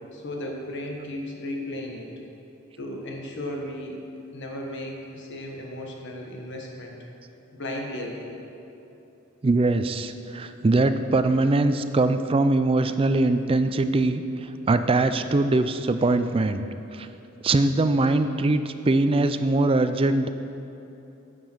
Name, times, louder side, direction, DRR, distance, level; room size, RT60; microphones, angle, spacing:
voice 1, 0.1-2.1 2.8-4.0 4.3-7.0 7.5-8.4, left 1 dB, 55° left, 0 dB, 1.4 m, -35 dB
voice 2, 9.4-14.2 14.7-16.6 16.9-17.1 17.4-20.3, right 2 dB, 25° right, 10 dB, 0.4 m, -22 dB
9.5 x 6.8 x 6.1 m, 3.0 s
head